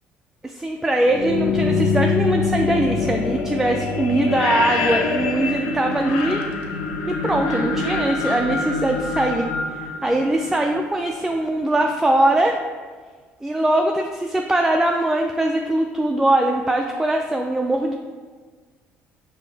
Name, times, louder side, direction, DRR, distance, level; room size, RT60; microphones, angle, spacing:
voice 1, 0.4-6.4 7.1-12.6 13.4-17.9, right 1 dB, 5° right, 2 dB, 0.4 m, -21 dB
sound 1, 1.0-10.9, left 4 dB, 80° left, 0.5 m, -24 dB
5.0 x 2.7 x 3.4 m, 1.5 s
hypercardioid pair, 60°, 5 cm